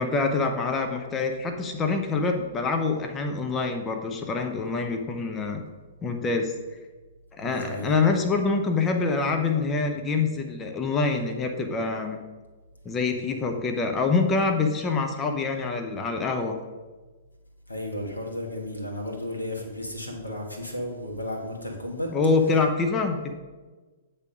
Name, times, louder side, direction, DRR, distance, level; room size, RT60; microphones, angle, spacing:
voice 1, 0.0-5.6 6.0-6.5 7.4-12.2 12.8-16.6 22.1-23.3, left 4 dB, 20° left, 4 dB, 0.6 m, -25 dB
voice 2, 7.4-7.9 17.7-22.1, left 1 dB, 85° left, 1 dB, 1.3 m, -33 dB
8.2 x 3.5 x 4.9 m, 1.3 s
figure-of-eight pair, 110°, 0 cm